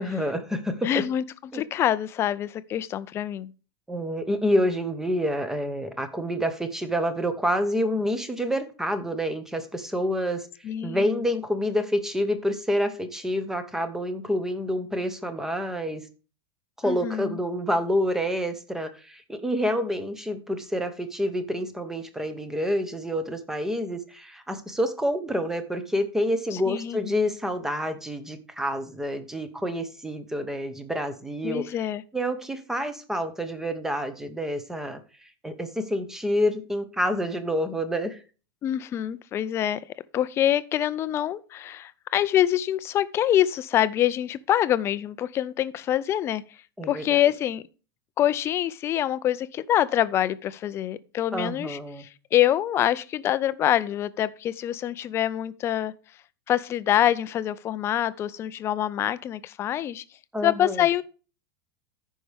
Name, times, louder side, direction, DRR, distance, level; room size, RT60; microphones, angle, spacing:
voice 1, 0.0-1.0 1.5-1.6 3.9-10.5 10.8-16.0 16.8-31.7 32.1-38.2 46.8-47.2 51.3-52.0 60.3-60.9, equal, 5° right, 0.8 m, -28 dB
voice 2, 0.8-3.5 10.6-11.2 16.8-17.4 26.5-27.1 31.4-32.0 38.6-39.8 40.1-46.4 46.9-47.6 48.2-55.9 56.5-60.0 60.4-61.0, left 11 dB, 20° left, 0.3 m, -25 dB
14.0 x 5.4 x 3.4 m
supercardioid pair, 165°, 13 cm